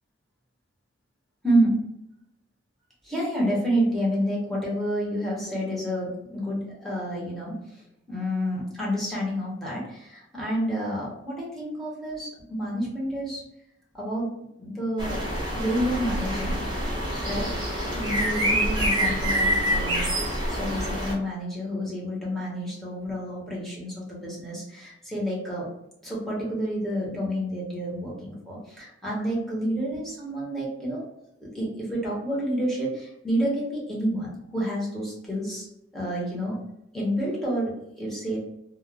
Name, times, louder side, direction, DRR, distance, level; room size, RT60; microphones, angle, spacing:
voice 1, 1.4-1.8 3.0-7.6 8.1-13.4 13.9-15.2 15.5-16.6 17.2-17.5 17.9-20.1 20.5-25.7 26.0-31.0 31.4-35.7 35.9-36.6 36.9-38.4, equal, ahead, -6 dB, 0.9 m, -29 dB
sound 1, 15.0-21.1, equal, 25° right, 0.8 m, -26 dB
2.4 x 2.1 x 3.2 m, 0.83 s
head